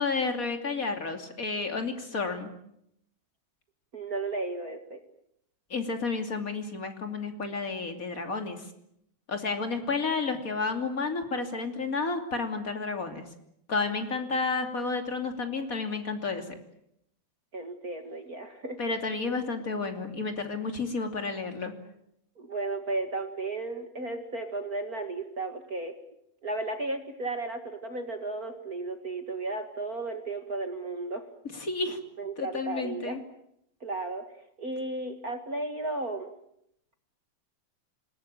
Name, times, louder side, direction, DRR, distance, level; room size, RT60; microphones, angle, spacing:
voice 1, 0.0-2.5 5.7-8.6 9.3-13.2 13.7-16.6 18.8-21.7 31.5-32.0 32.4-33.2, left 4 dB, 25° left, 6 dB, 2.5 m, -31 dB
voice 2, 3.9-5.0 17.5-19.4 22.4-25.9 26.4-31.2 32.2-33.2 33.8-34.2 34.6-36.3, right 2 dB, 55° right, 6 dB, 1.0 m, -34 dB
27.0 x 20.5 x 8.8 m, 0.76 s
omnidirectional pair, 4.6 m